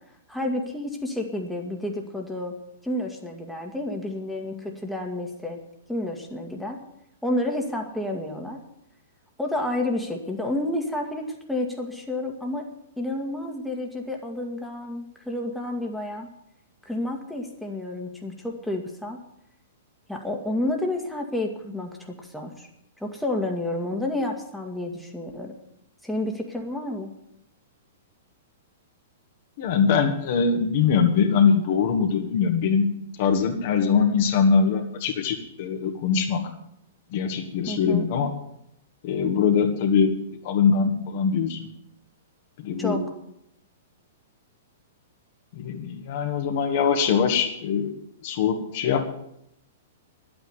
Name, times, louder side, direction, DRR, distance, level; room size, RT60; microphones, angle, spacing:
voice 1, 0.3-2.5 2.8-5.6 5.9-6.8 7.2-8.6 9.4-12.7 13.0-16.3 16.9-19.2 20.1-22.7 23.0-25.5 26.0-27.1 37.7-38.1 42.8-43.0, left 1 dB, ahead, 1 dB, 1.9 m, -30 dB
voice 2, 29.6-32.8 33.2-36.4 37.1-38.3 39.0-40.1 40.4-41.7 42.6-43.0 45.6-47.9 48.2-49.1, left 6 dB, 50° left, 4 dB, 1.9 m, -22 dB
11.5 x 8.8 x 9.5 m, 0.77 s
figure-of-eight pair, 110°, 0 cm